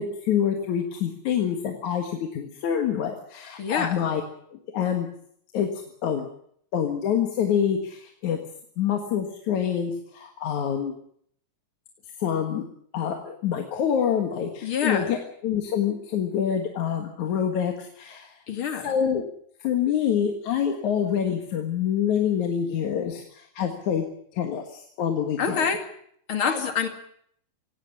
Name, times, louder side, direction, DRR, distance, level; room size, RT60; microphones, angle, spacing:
voice 1, 0.0-4.2 4.5-5.1 5.5-5.7 6.0-6.3 6.7-8.4 8.8-10.9 12.2-12.6 12.9-15.2 15.4-18.4 18.8-19.2 19.6-24.1 24.3-25.6 26.5-26.7, left 8 dB, 80° left, 4 dB, 3.0 m, -26 dB
voice 2, 3.6-4.0 14.6-15.1 18.5-18.9 25.4-25.8 26.3-26.9, left 6 dB, 45° left, 7 dB, 2.9 m, -26 dB
17.5 x 17.0 x 9.6 m, 0.66 s
omnidirectional pair, 3.4 m